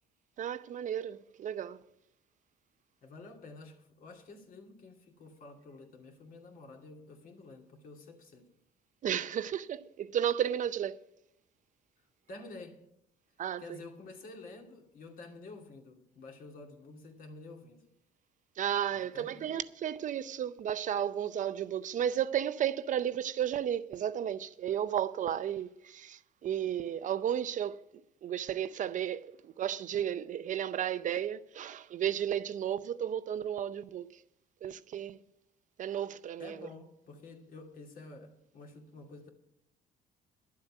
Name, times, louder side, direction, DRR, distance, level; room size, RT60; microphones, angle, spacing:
voice 1, 0.4-1.8 9.0-11.0 13.4-13.6 18.6-27.8 28.2-34.1 34.6-35.2 35.8-36.6, right 10 dB, 50° right, 0.6 m, -33 dB
voice 2, 3.0-8.5 12.3-12.9 13.6-17.9 18.9-19.6 36.4-39.3, left 3 dB, 55° left, 2.6 m, -50 dB
11.5 x 7.5 x 8.9 m
cardioid pair, 110°, 17 cm